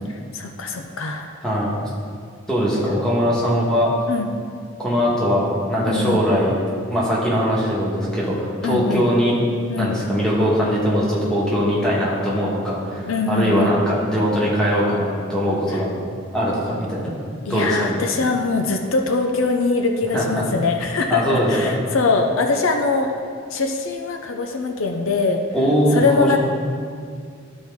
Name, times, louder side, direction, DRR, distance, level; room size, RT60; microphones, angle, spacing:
voice 1, 0.1-1.3 2.7-3.0 4.1-4.3 5.9-6.2 8.6-9.1 9.7-10.0 13.1-13.7 17.4-23.1 23.5-25.4 25.9-26.4, left 3 dB, 75° left, 4 dB, 0.6 m, -22 dB
voice 2, 2.5-3.9 4.8-6.5 6.9-9.3 9.8-15.9 16.3-17.1 17.5-17.9 20.1-20.4 21.1-21.7 25.5-26.4, equal, 5° left, -7 dB, 1.5 m, -21 dB
13.0 x 4.4 x 3.6 m, 2.2 s
head